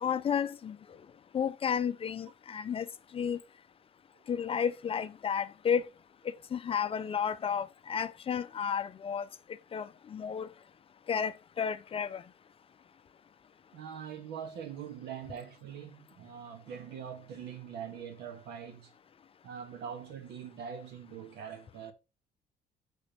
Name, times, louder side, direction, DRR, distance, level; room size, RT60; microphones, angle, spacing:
voice 1, 0.0-0.8 1.3-2.8 3.1-3.4 4.3-5.9 6.5-9.2 9.7-10.5 11.1-12.2, left 7 dB, 35° left, 0.5 m, -32 dB
voice 2, 13.7-18.9 19.4-21.9, right 8 dB, 80° right, 1.6 m, -43 dB
7.0 x 4.5 x 4.3 m
cardioid pair, 110°, 17 cm